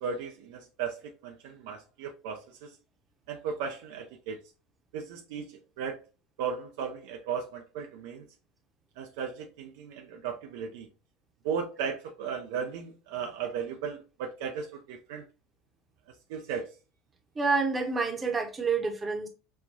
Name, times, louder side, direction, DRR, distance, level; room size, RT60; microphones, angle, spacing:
voice 1, 0.0-2.8 3.3-4.4 4.9-6.0 6.4-8.3 9.0-10.9 11.4-15.2 16.3-16.7, right 6 dB, 55° right, 0.4 m, -36 dB
voice 2, 17.3-19.3, right 4 dB, 20° right, 0.8 m, -28 dB
5.3 x 2.2 x 2.6 m
figure-of-eight pair, 75°, 0 cm